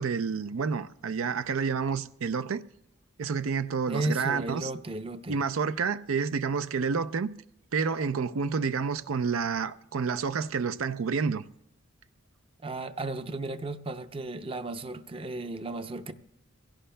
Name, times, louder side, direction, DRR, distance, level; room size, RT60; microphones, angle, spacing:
voice 1, 0.0-2.6 3.2-4.7 5.3-7.3 7.7-11.4, right 5 dB, 85° right, 0.5 m, -29 dB
voice 2, 3.9-5.4 12.6-16.1, right 2 dB, 25° right, 0.6 m, -34 dB
23.5 x 16.5 x 2.2 m
head